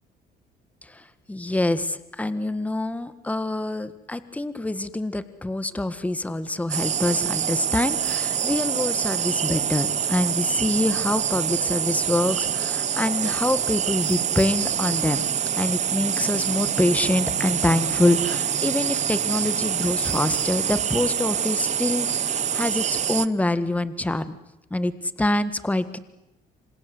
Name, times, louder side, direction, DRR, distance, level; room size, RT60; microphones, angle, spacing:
voice 1, 0.8-15.2 15.6-24.4 24.7-24.9 25.2-26.0, left 1 dB, 10° left, 13 dB, 1.6 m, -25 dB
sound 1, 6.7-23.3, right 8 dB, 45° right, 1.0 m, -26 dB
28.5 x 26.0 x 7.9 m, 0.88 s
cardioid pair, 110°, 17 cm